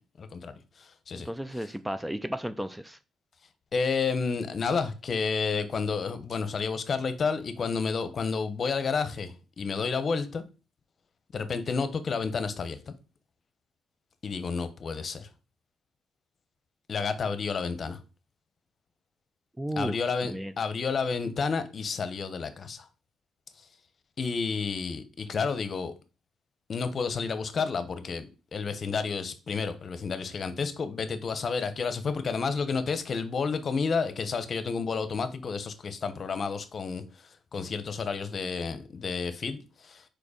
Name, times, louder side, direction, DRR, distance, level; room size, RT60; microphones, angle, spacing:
voice 1, 0.2-1.3 3.7-10.4 11.3-12.9 14.2-15.3 16.9-18.0 19.8-22.9 24.2-25.9 26.7-37.0 37.5-40.0, left 5 dB, 45° left, 0.9 m, -30 dB
voice 2, 1.1-3.0 19.6-20.0 20.2-20.5, right 1 dB, 5° right, 0.4 m, -33 dB
4.9 x 4.5 x 5.0 m
cardioid pair, 90°, 0 cm